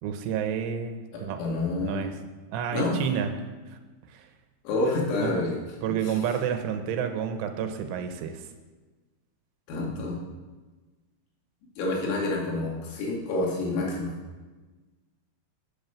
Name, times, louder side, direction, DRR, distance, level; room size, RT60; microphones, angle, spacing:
voice 1, 0.0-1.4 1.8-2.2 2.5-3.3 4.1-4.3 5.2-5.4 5.8-8.5, right 8 dB, 75° right, 7 dB, 3.3 m, -30 dB
voice 2, 1.1-2.0 2.7-3.0 4.7-5.5 6.0-6.2 9.7-10.2 11.8-14.1, left 2 dB, 90° left, -2 dB, 5.2 m, -28 dB
12.5 x 8.8 x 7.3 m, 1.3 s
omnidirectional pair, 5.9 m